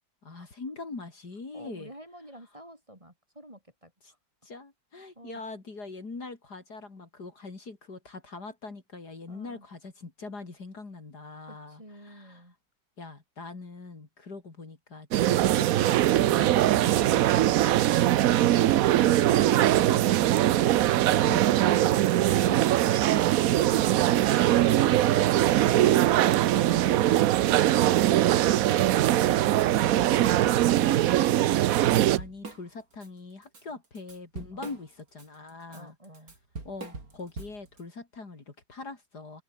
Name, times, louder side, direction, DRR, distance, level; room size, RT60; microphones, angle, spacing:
voice 1, 0.2-1.9 4.0-4.1 4.4-12.4 13.0-17.4 18.7-18.8 19.0-20.4 20.9-22.6 25.7-26.0 31.8-36.0 36.6-39.4, left 3 dB, 55° left, 3.9 m, -42 dB
voice 2, 1.5-4.2 5.1-5.4 9.3-9.7 11.4-12.5 33.7-33.8 34.5-34.8 35.7-36.3, equal, 15° right, 4.8 m, -49 dB
sound 1, 15.1-32.2, right 13 dB, 75° right, 0.8 m, -22 dB
Drum kit / Drum, 29.2-29.3 29.6-30.9 31.3-31.4 31.8-33.1 33.4-37.8, right 3 dB, 45° right, 4.5 m, -43 dB
omnidirectional pair, 2.1 m